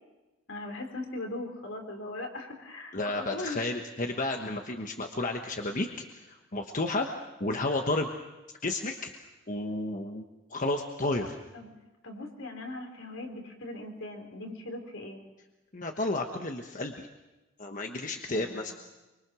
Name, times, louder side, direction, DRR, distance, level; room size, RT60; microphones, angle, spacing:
voice 1, 0.5-3.6 11.2-11.3 11.5-11.7 12.0-15.2 18.3-18.7, left 2 dB, 75° left, 3 dB, 4.1 m, -39 dB
voice 2, 2.9-5.9 6.1-7.1 7.4-8.1 8.6-9.1 9.5-10.2 10.5-11.4 15.7-17.1 17.6-18.7, left 2 dB, 40° left, 3 dB, 1.2 m, -32 dB
24.5 x 24.5 x 6.3 m, 1.1 s
head